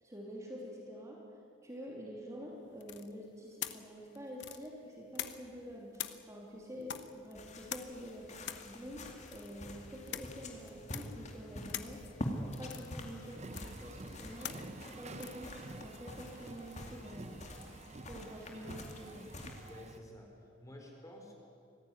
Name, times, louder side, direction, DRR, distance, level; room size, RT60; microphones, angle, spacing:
voice 1, 0.0-1.2 1.6-8.3 8.6-12.0 12.3-17.3 18.1-19.3, equal, 15° right, -2 dB, 3.1 m, -47 dB
sound 1, 2.8-5.6 5.9-16.9, left 10 dB, 65° left, 1.0 m, -46 dB
sound 2, 7.3-20.1, left 1 dB, 35° left, 2.5 m, -46 dB
sound 3, 13.3-20.0, right 2 dB, 35° right, 0.8 m, -50 dB
voice 2, 19.7-21.3, left 1 dB, 15° left, 1 dB, 4.2 m, -52 dB
25.0 x 16.0 x 9.7 m, 2.5 s
head